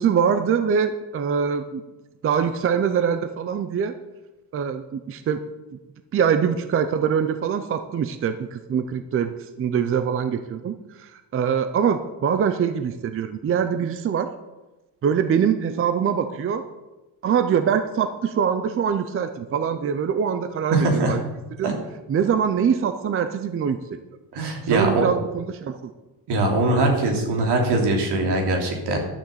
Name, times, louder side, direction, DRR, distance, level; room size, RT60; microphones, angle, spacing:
voice 1, 0.0-1.8 2.2-3.9 4.5-5.4 6.1-14.3 15.0-16.6 17.2-21.2 21.6-21.7 22.1-24.0 24.7-25.8, right 7 dB, 35° right, 10 dB, 0.5 m, -23 dB
voice 2, 20.7-21.1 21.6-21.7 24.3-25.0 26.3-29.0, right 2 dB, 75° right, 2 dB, 3.1 m, -21 dB
11.5 x 6.9 x 7.8 m, 1.1 s
cardioid pair, 180°, 41 cm